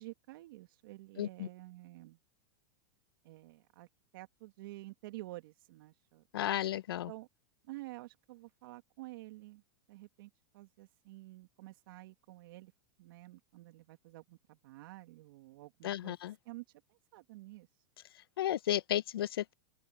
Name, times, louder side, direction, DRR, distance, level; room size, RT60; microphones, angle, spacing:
voice 1, 0.0-2.2 3.2-3.9 4.1-6.2 7.1-7.3 7.7-9.6 9.9-12.7 13.0-16.2 16.5-16.6 16.9-17.7, right 19 dB, 65° right, 2.1 m, -50 dB
voice 2, 1.2-1.5 6.3-7.1 15.8-16.3 18.4-19.5, left 12 dB, 80° left, 1.4 m, -33 dB
open air
hypercardioid pair, 110°, 12 cm